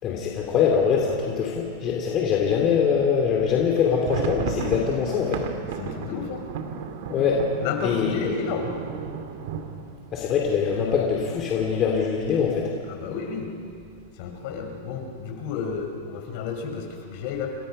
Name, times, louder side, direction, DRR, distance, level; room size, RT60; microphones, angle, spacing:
voice 1, 0.0-5.4 7.1-7.4 7.8-8.1 10.1-12.7, left 6 dB, 30° left, 0 dB, 3.0 m, -23 dB
sound 1, 3.7-11.4 11.8-11.9 12.1-12.4 12.9-13.4, right 7 dB, 65° right, 2.5 m, -35 dB
voice 2, 5.6-6.4 7.6-8.8 12.9-13.5 14.1-17.5, left 6 dB, 55° left, 3 dB, 5.0 m, -31 dB
29.0 x 24.5 x 5.6 m, 2.4 s
supercardioid pair, 140°, 0 cm